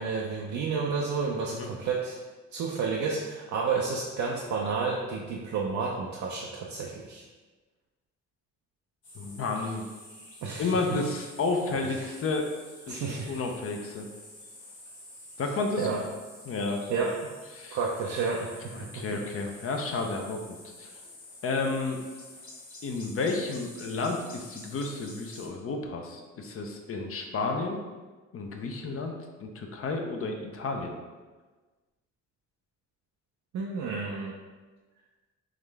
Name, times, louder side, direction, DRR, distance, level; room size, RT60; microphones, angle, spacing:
voice 1, 0.0-2.2 2.5-7.3 10.4-11.0 11.8-12.1 12.9-13.3 15.8-16.1 16.9-17.3 17.7-19.2 33.5-34.4, right 4 dB, 65° right, -2 dB, 0.5 m, -31 dB
sound 1, 9.0-25.5, left 1 dB, 80° left, 1.5 m, -49 dB
voice 2, 9.1-9.8 10.6-12.5 12.9-14.1 15.4-16.0 16.5-16.8 17.5-17.8 18.7-20.4 20.8-20.9 21.4-22.0 22.8-27.8 28.3-29.1 29.4-30.9, left 3 dB, 50° left, 3 dB, 0.6 m, -31 dB
3.7 x 3.1 x 3.4 m, 1.3 s
cardioid pair, 90°, 30 cm